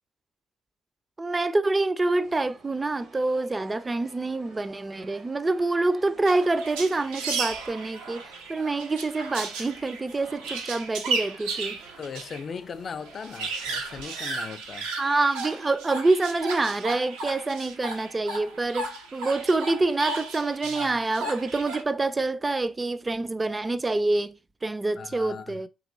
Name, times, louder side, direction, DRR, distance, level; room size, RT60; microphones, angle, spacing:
voice 1, 1.2-8.2 8.5-11.8 15.0-25.7, right 2 dB, 25° right, 0.3 m, -26 dB
sound 1, 2.0-14.6, right 3 dB, 65° right, 0.9 m, -53 dB
sound 2, 6.3-12.4 12.7-12.8 13.1-21.8, right 3 dB, 90° right, 0.6 m, -35 dB
voice 2, 12.0-14.9 20.6-21.0 25.0-25.6, left 6 dB, 50° left, 0.3 m, -39 dB
3.0 x 2.9 x 2.5 m
supercardioid pair, 55°, 0 cm